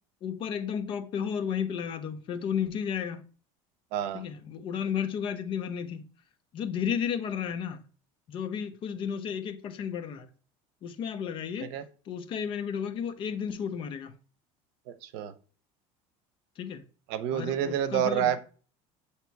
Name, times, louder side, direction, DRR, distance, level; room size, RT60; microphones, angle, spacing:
voice 1, 0.2-3.2 4.1-6.1 6.5-7.8 8.3-10.3 10.8-11.7 12.1-14.1 16.6-16.8 17.3-18.4, left 7 dB, 40° left, 0.7 m, -33 dB
voice 2, 3.9-4.2 11.6-11.8 14.9-15.3 17.1-18.4, right 10 dB, 80° right, 0.7 m, -29 dB
8.0 x 2.9 x 4.6 m
cardioid pair, 165°, 14 cm